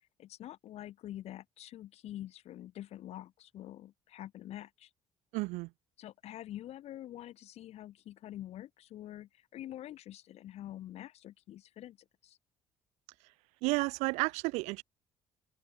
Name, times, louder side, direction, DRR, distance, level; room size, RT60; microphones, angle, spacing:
voice 1, 0.2-4.9 6.0-12.0 12.2-12.4, left 13 dB, 70° left, 3.5 m, -46 dB
voice 2, 5.3-5.7 13.6-14.8, right 25 dB, 90° right, 0.8 m, -31 dB
open air
supercardioid pair, 85°, 11 cm